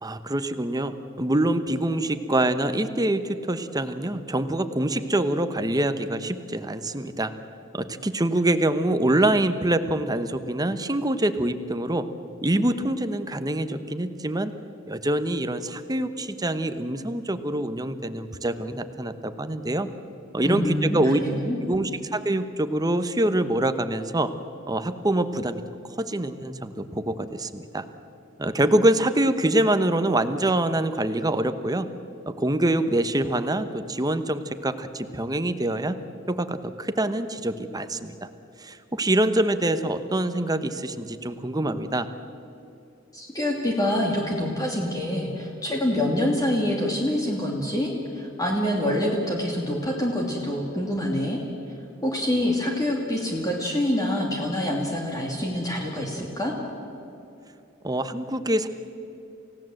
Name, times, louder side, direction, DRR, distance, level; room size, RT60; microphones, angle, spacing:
voice 1, 0.0-7.3 7.7-12.1 12.4-14.5 14.9-19.9 20.3-21.2 21.6-24.3 24.7-25.6 26.0-27.8 28.4-31.9 32.3-36.0 36.3-38.3 38.6-42.1 57.8-58.7, right 1 dB, 20° right, 10 dB, 1.0 m, -25 dB
voice 2, 20.4-21.6 43.1-51.4 52.0-56.5, left 1 dB, 20° left, -1 dB, 2.6 m, -26 dB
28.5 x 16.5 x 7.8 m, 2.8 s
head